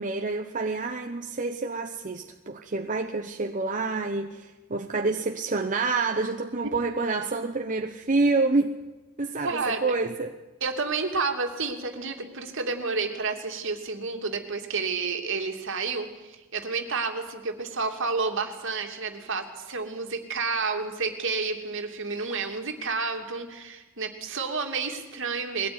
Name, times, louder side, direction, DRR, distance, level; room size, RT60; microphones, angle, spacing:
voice 1, 0.0-8.8 9.2-10.3, right 3 dB, 40° right, 4 dB, 0.9 m, -28 dB
voice 2, 9.4-10.0 10.6-25.7, right 4 dB, 60° right, 4 dB, 2.7 m, -30 dB
21.5 x 17.0 x 9.6 m, 1.1 s
head